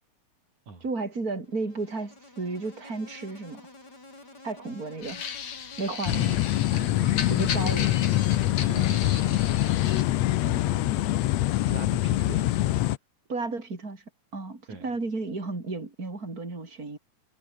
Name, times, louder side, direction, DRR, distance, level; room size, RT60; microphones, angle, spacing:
voice 1, 0.8-3.7 4.4-5.3 5.8-6.4 7.3-7.9 8.8-9.0 13.3-14.0 14.3-17.0, right 3 dB, 25° right, 5.6 m, -33 dB
Insect, 1.4-9.7, left 2 dB, 25° left, 7.7 m, -50 dB
sound 1, 5.0-10.0, left 7 dB, 60° left, 4.1 m, -36 dB
sound 2, 6.1-13.0, left 15 dB, 75° left, 1.6 m, -24 dB
voice 2, 6.7-7.7 8.3-9.8 10.4-11.2 11.7-12.7 14.7-14.9, right 4 dB, 55° right, 7.4 m, -43 dB
omnidirectional pair, 4.0 m